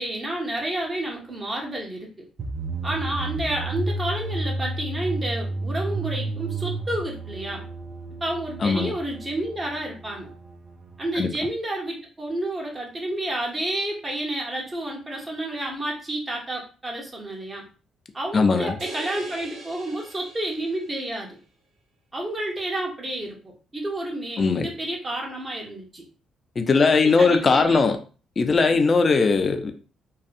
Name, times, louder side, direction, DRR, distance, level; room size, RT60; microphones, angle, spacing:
voice 1, 0.0-2.3 2.8-7.6 8.2-10.3 11.0-17.7 18.1-21.4 22.1-23.4 23.7-26.0 26.8-27.8, right 1 dB, 25° right, -1 dB, 0.9 m, -30 dB
sound 1, 2.4-11.2, right 2 dB, 45° right, 0.4 m, -32 dB
voice 2, 8.6-8.9 11.2-11.3 18.3-18.8 24.4-24.7 26.6-28.0 28.4-29.7, left 4 dB, 40° left, 7 dB, 0.4 m, -19 dB
sound 2, 18.8-21.1, right 2 dB, 80° right, 0.9 m, -41 dB
2.6 x 2.2 x 2.5 m, 0.37 s
cardioid pair, 90°, 0 cm